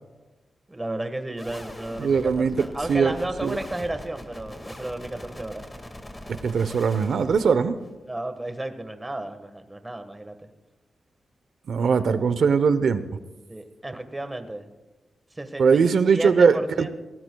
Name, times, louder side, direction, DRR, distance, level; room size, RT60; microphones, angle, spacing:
voice 1, 0.7-5.6 8.1-10.5 11.8-12.2 13.5-14.7 15.3-17.0, right 1 dB, 15° right, 7 dB, 1.4 m, -33 dB
sound 1, 1.4-8.0, left 1 dB, 15° left, 1.9 m, -42 dB
voice 2, 2.0-2.6 2.9-3.1 3.4-3.6 6.3-7.8 11.7-13.0 15.6-16.9, right 5 dB, 70° right, 13 dB, 0.8 m, -20 dB
21.0 x 18.5 x 2.3 m, 1.2 s
cardioid pair, 80°, 0 cm